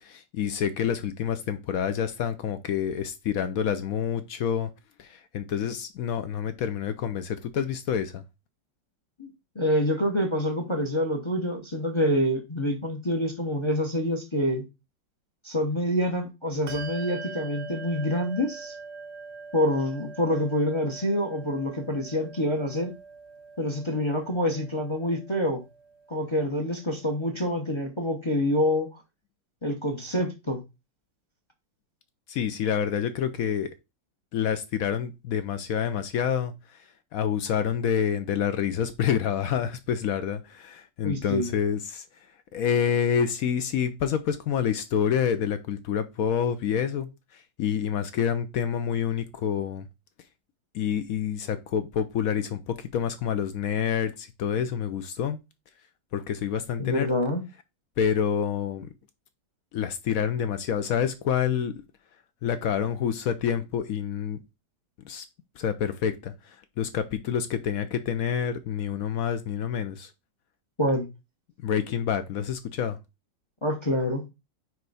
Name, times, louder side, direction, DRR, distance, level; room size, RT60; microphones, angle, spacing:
voice 1, 0.0-4.7 5.0-8.2 32.3-33.7 34.3-42.0 42.5-49.9 50.7-55.4 56.1-57.1 58.0-58.9 59.7-61.7 62.4-64.4 65.0-65.2 65.6-70.1 71.6-73.0, left 8 dB, 70° left, 0.8 m, -28 dB
voice 2, 9.5-14.6 15.4-18.7 19.5-22.9 23.6-25.6 26.1-28.9 29.6-30.6 41.0-41.5 56.8-57.4 70.8-71.1 73.6-74.2, left 1 dB, 30° left, 0.5 m, -26 dB
Bell, 16.7-26.7, right 4 dB, 60° right, 0.6 m, -43 dB
9.2 x 3.2 x 4.0 m
omnidirectional pair, 2.1 m